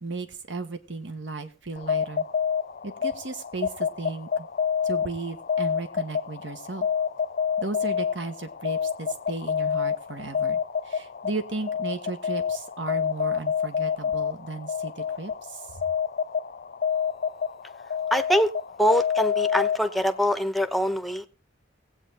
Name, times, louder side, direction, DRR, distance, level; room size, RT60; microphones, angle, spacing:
voice 1, 0.0-2.2 2.8-4.5 4.8-6.9 7.6-15.8, right 3 dB, 75° right, 1.5 m, -35 dB
sound 1, 1.8-20.2, left 7 dB, 50° left, 0.6 m, -28 dB
voice 2, 18.1-18.5 18.8-21.3, equal, ahead, 0.8 m, -24 dB
19.5 x 8.4 x 3.7 m
head